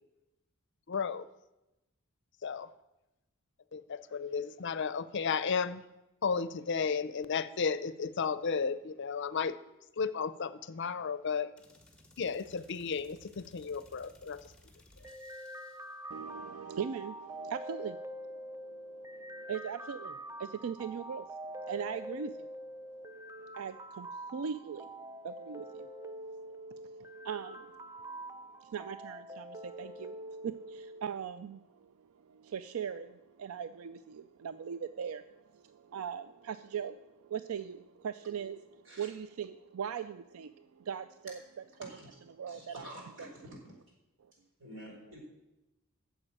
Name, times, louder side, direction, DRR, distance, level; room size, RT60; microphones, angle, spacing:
voice 1, 0.9-1.3 2.4-2.7 3.7-5.8 6.2-9.6 10.0-11.5 12.2-14.4, left 5 dB, 60° left, 15 dB, 0.5 m, -33 dB
sound 1, 11.6-16.0, left 1 dB, 5° left, 1.5 m, -60 dB
sound 2, 15.0-31.0, right 1 dB, 15° right, 0.5 m, -45 dB
voice 2, 16.1-41.4 41.8-41.9 42.3-42.9 43.2-43.3, right 7 dB, 85° right, 12 dB, 0.4 m, -41 dB
voice 3, 42.5-43.6 44.6-45.2, right 1 dB, 60° right, -1 dB, 4.1 m, -48 dB
9.9 x 7.2 x 8.6 m, 0.98 s
head